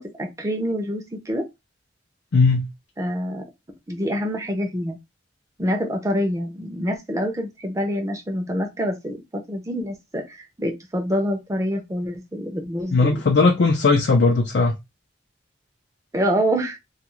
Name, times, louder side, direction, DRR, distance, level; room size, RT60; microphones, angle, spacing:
voice 1, 0.0-1.5 3.0-3.4 3.9-5.0 5.6-13.2 16.1-16.8, equal, 15° right, 0.5 m, -26 dB
voice 2, 2.3-2.7 12.9-14.8, left 3 dB, 60° left, 0.5 m, -18 dB
2.4 x 2.4 x 3.0 m
head